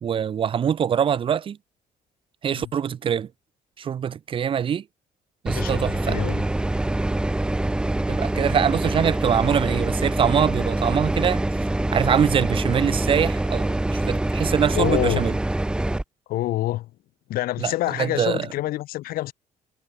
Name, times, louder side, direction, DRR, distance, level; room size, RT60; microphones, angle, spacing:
voice 1, 0.0-1.6 2.4-3.3 3.8-4.8 5.4-6.2 8.1-11.4 11.9-15.4 17.6-17.7 18.0-18.5, right 8 dB, 35° right, 1.6 m, -23 dB
voice 2, 5.5-6.4 14.7-15.2 16.3-16.9 17.3-19.3, left 15 dB, 75° left, 4.6 m, -27 dB
sound 1, 5.5-16.0, right 1 dB, 5° right, 0.8 m, -25 dB
cardioid pair, 170°, 15 cm